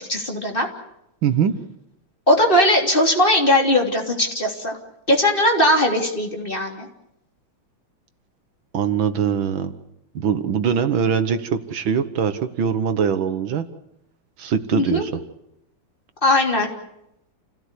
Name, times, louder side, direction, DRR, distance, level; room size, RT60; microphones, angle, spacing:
voice 1, 0.1-0.7 2.3-4.8 5.1-6.9 14.7-15.0 16.2-16.7, left 1 dB, 25° left, 1 dB, 3.5 m, -19 dB
voice 2, 1.2-1.6 8.7-9.7 10.2-13.7 14.4-15.1, right 7 dB, 75° right, 10 dB, 2.0 m, -22 dB
29.0 x 17.0 x 8.3 m, 0.83 s
omnidirectional pair, 2.2 m